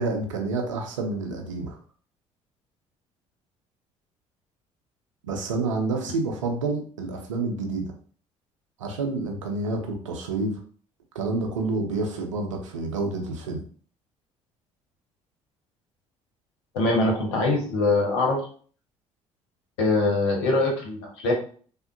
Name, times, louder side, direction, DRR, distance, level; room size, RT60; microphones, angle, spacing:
voice 1, 0.0-1.8 5.2-7.9 8.8-10.6 11.1-13.6, right 3 dB, 90° right, 3 dB, 0.5 m, -28 dB
voice 2, 16.7-18.4 19.8-21.3, left 2 dB, 75° left, 0 dB, 0.9 m, -23 dB
3.5 x 2.1 x 2.5 m, 0.44 s
hypercardioid pair, 55°, 16 cm